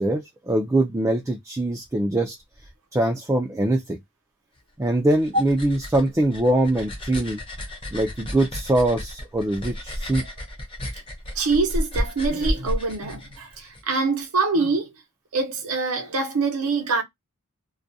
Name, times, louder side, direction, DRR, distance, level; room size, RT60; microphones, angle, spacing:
voice 1, 0.0-2.4 2.9-4.0 4.8-7.4 7.9-10.2, right 1 dB, 15° right, 0.3 m, -23 dB
sound 1, 4.9-13.8, equal, 25° left, 0.7 m, -32 dB
voice 2, 11.3-14.9 15.3-17.0, right 4 dB, 85° right, 0.7 m, -24 dB
2.3 x 2.1 x 2.6 m
head